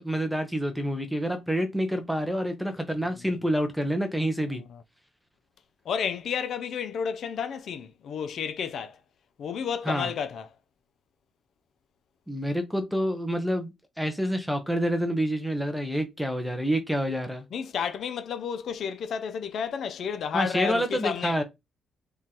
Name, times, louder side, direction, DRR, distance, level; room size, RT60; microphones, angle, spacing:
voice 1, 0.0-4.6 9.8-10.1 12.3-17.4 20.3-21.4, equal, ahead, 0.9 m, -28 dB
voice 2, 5.9-9.0 9.4-10.5 17.5-21.4, left 7 dB, 65° left, 0.5 m, -31 dB
3.8 x 3.0 x 2.9 m
cardioid pair, 90°, 0 cm